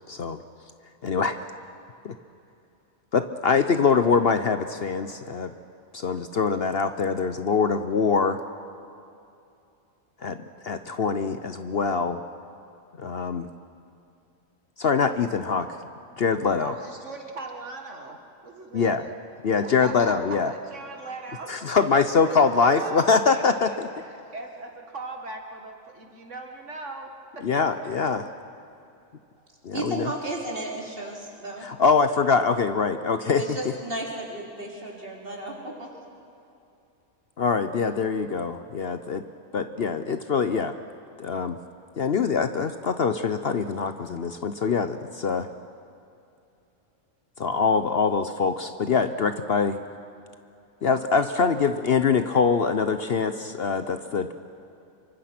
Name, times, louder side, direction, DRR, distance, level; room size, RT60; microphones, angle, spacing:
voice 1, 0.1-0.4 1.0-1.4 2.0-2.1 3.1-5.5 5.9-8.4 10.2-10.4 10.6-12.2 13.0-13.5 14.8-15.7 16.2-16.7 18.7-19.0 19.4-20.5 21.5-23.7 27.4-28.2 29.6-30.1 31.6-33.6 37.4-39.2 39.5-40.7 41.2-41.6 42.0-45.5 47.4-49.8 50.8-54.3, left 5 dB, 55° left, 10 dB, 0.9 m, -23 dB
voice 2, 16.6-19.0 19.6-21.9 22.2-27.1 27.4-27.5 27.8-28.4, right 3 dB, 60° right, 3 dB, 2.2 m, -39 dB
voice 3, 29.7-31.7 33.4-35.9, right 1 dB, 45° right, -1 dB, 4.0 m, -34 dB
26.0 x 24.5 x 6.0 m, 2.6 s
omnidirectional pair, 1.4 m